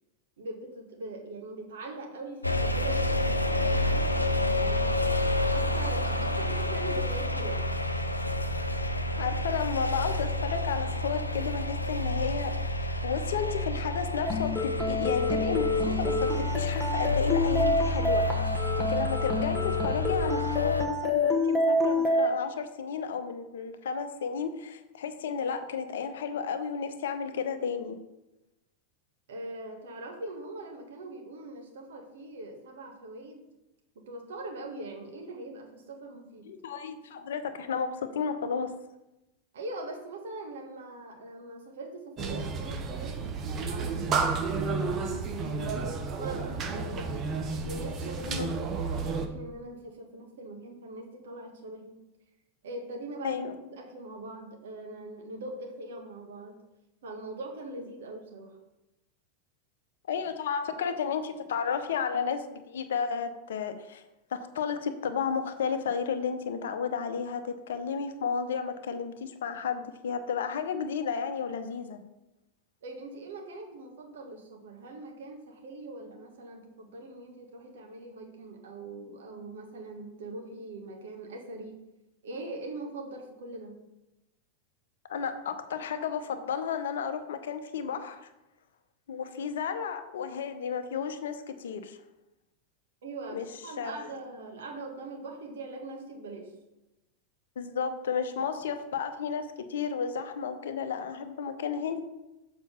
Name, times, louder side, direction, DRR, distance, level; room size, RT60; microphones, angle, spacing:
voice 1, 0.4-7.6 29.3-33.4 33.9-36.5 39.5-43.2 43.6-47.3 47.7-52.0 52.6-56.6 57.0-58.5 72.8-81.8 82.2-83.8 93.0-96.5, right 2 dB, 60° right, 1 dB, 1.7 m, -42 dB
sound 1, 2.4-20.9, left 1 dB, 85° left, 0.5 m, -29 dB
voice 2, 9.2-12.5 12.8-18.3 18.5-28.0 36.4-38.7 48.3-48.5 53.2-53.5 60.1-64.0 64.3-72.0 85.1-88.2 89.1-92.0 93.3-93.4 93.8-94.1 97.6-102.0, left 6 dB, 60° left, 8 dB, 0.8 m, -32 dB
sound 2, 14.3-22.3, left 2 dB, 5° left, 1.2 m, -28 dB
sound 3, 42.2-49.3, right 4 dB, 30° right, 0.9 m, -31 dB
7.2 x 4.8 x 5.7 m, 0.96 s
figure-of-eight pair, 90°, 0 cm